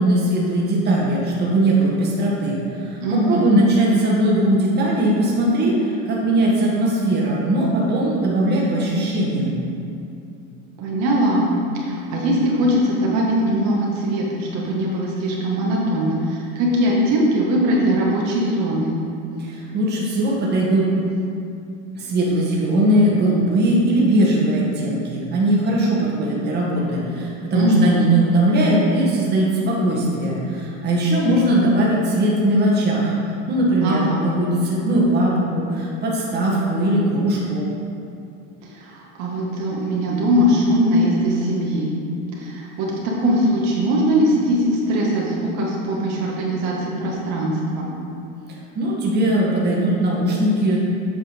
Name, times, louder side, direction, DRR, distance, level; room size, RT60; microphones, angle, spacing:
voice 1, 0.0-9.6 19.4-20.9 21.9-33.1 33.5-37.6 48.8-50.8, right 1 dB, 30° right, -5 dB, 1.8 m, -19 dB
voice 2, 3.0-3.5 10.8-11.5 11.8-19.0 27.5-28.0 33.8-34.2 38.7-41.9 42.4-47.9, equal, 55° right, -4 dB, 1.8 m, -21 dB
8.2 x 5.4 x 5.3 m, 2.5 s
supercardioid pair, 130°, 33 cm